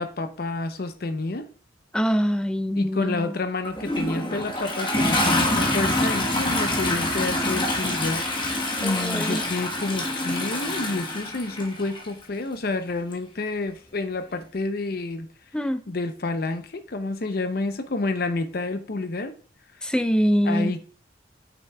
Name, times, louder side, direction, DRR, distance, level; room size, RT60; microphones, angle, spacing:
voice 1, 0.0-1.5 2.8-8.2 8.5-15.3 15.9-19.3 20.4-20.9, left 3 dB, 55° left, 0.6 m, -29 dB
voice 2, 1.9-3.4 8.8-9.4 15.5-15.8 19.8-20.8, equal, 5° left, 0.4 m, -24 dB
Toilet flush, 3.6-12.1 13.1-13.2, left 1 dB, 25° left, 1.2 m, -26 dB
7.7 x 6.0 x 2.3 m
head